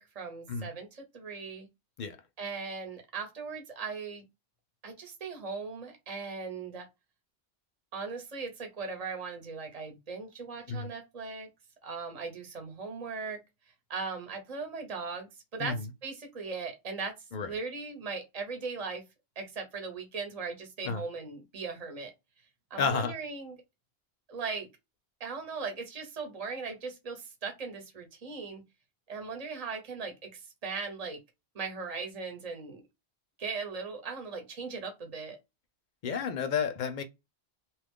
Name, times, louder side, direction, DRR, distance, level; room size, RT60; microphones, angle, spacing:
voice 1, 0.0-1.7 2.4-4.2 4.8-6.9 7.9-11.5 11.8-13.4 13.9-15.7 16.0-17.1 17.4-19.0 19.4-22.1 22.7-23.6 24.3-24.7 25.2-28.6 29.1-31.2 31.5-32.8 33.4-35.4, right 4 dB, 35° right, 1.0 m, -38 dB
voice 2, 22.8-23.1 36.0-37.0, left 6 dB, 55° left, 0.6 m, -31 dB
2.9 x 2.4 x 3.5 m
omnidirectional pair, 1.1 m